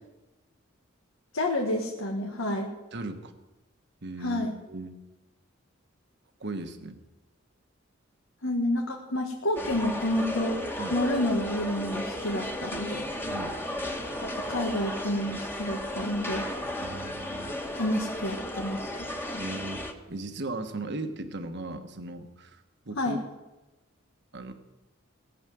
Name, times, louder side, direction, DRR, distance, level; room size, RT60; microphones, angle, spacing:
voice 1, 1.3-2.7 4.2-4.5 8.4-10.6 10.9-13.1 14.2-16.5 17.8-19.4 23.0-23.2, left 1 dB, 90° left, 0 dB, 1.7 m, -29 dB
voice 2, 2.9-3.3 4.0-4.9 6.4-7.0 10.8-11.0 13.2-13.5 16.8-17.5 19.4-19.8 20.1-23.2 24.3-24.5, right 2 dB, 55° right, 7 dB, 1.2 m, -37 dB
sound 1, 9.6-19.9, left 1 dB, 10° left, 1.4 m, -34 dB
18.5 x 7.2 x 9.2 m, 1.1 s
head